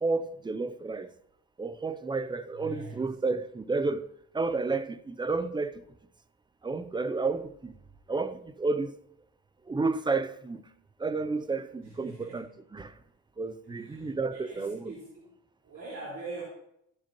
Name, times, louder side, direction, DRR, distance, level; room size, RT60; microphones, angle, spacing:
voice 1, 0.0-1.1 1.6-4.1 4.3-5.8 6.6-7.7 8.1-9.0 9.7-10.6 11.0-12.9 13.4-14.9, right 3 dB, 15° right, 0.5 m, -31 dB
voice 2, 2.5-3.2 11.8-12.5 13.6-15.3 15.6-16.4, right 3 dB, 55° right, 4.5 m, -43 dB
14.5 x 7.6 x 3.0 m
cardioid pair, 90°, 30 cm